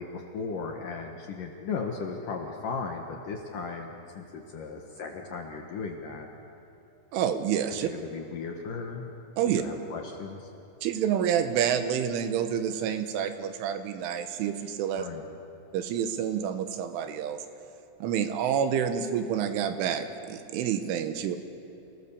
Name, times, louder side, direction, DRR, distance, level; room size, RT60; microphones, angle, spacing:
voice 1, 0.0-6.3 7.8-9.1 9.5-10.5 14.9-15.2, left 5 dB, 65° left, 1 dB, 2.3 m, -36 dB
voice 2, 7.1-7.9 9.4-9.6 10.8-15.1 15.7-17.4 18.0-21.4, right 9 dB, 90° right, 8 dB, 3.7 m, -28 dB
28.0 x 19.0 x 7.0 m, 2.8 s
omnidirectional pair, 5.4 m